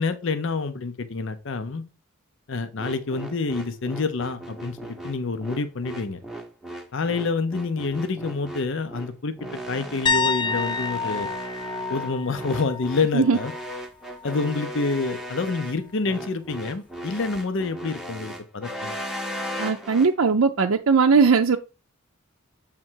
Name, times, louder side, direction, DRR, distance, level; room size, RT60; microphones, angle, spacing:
voice 1, 0.0-1.9 2.5-6.2 6.9-9.3 9.7-11.3 11.9-13.5 14.2-18.9, left 4 dB, 60° left, 0.6 m, -27 dB
sound 1, 2.8-20.1, right 1 dB, ahead, 0.8 m, -36 dB
sound 2, 10.1-13.8 14.1-14.5 17.4-17.5, left 4 dB, 20° left, 0.3 m, -29 dB
voice 2, 19.6-21.6, right 5 dB, 70° right, 0.5 m, -19 dB
7.6 x 3.6 x 4.5 m
head